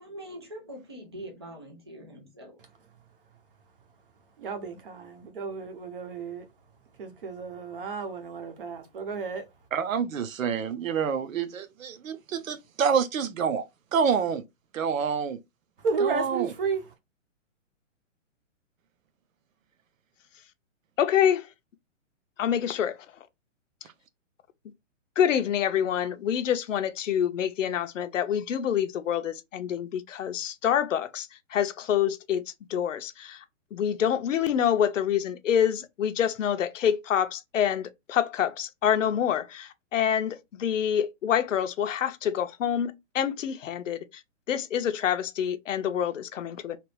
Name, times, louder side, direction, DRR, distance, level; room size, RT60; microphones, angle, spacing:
voice 1, 0.0-2.6, right 1 dB, 20° right, 0.4 m, -43 dB
voice 2, 4.4-6.5 7.0-9.4 15.8-16.9, right 5 dB, 45° right, 0.8 m, -32 dB
voice 3, 9.7-13.6 13.9-14.4 14.7-15.4 16.0-16.5, right 6 dB, 85° right, 0.8 m, -27 dB
voice 4, 21.0-21.5 22.4-23.0 25.2-33.4 33.7-44.0 44.5-46.8, left 9 dB, 70° left, 0.7 m, -27 dB
3.0 x 2.5 x 3.2 m
hypercardioid pair, 170°, 39 cm